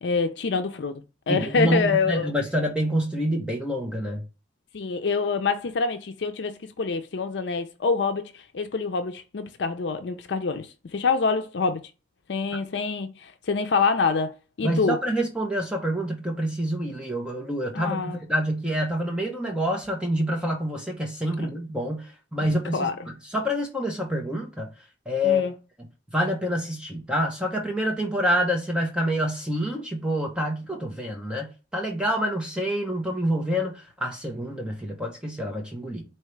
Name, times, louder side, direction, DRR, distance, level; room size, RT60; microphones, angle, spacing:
voice 1, 0.0-2.3 4.7-11.8 12.3-14.3 14.6-15.0 17.7-18.2 21.4-21.5 22.4-23.0 25.2-25.5, left 4 dB, 75° left, 0.5 m, -26 dB
voice 2, 1.3-4.2 14.6-22.9 23.3-24.7 25.1-25.5 26.1-36.0, equal, 5° right, 0.7 m, -27 dB
4.6 x 2.8 x 3.2 m
head